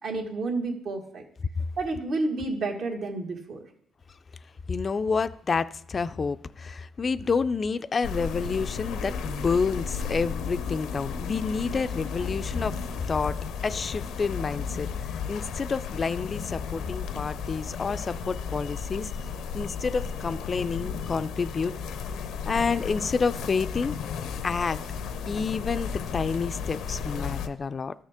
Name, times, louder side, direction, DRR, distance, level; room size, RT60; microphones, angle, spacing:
voice 1, 0.0-1.2 1.8-3.6 11.6-11.8, right 3 dB, 65° right, 2 dB, 1.7 m, -30 dB
voice 2, 4.7-12.8 13.1-13.4 13.6-19.1 19.5-21.7 22.5-24.0 24.4-24.8 25.3-27.9, left 5 dB, 40° left, 13 dB, 0.4 m, -29 dB
sound 1, 8.0-27.5, left 6 dB, 85° left, 0.6 m, -34 dB
13.0 x 6.4 x 3.6 m, 0.72 s
cardioid pair, 90°, 0 cm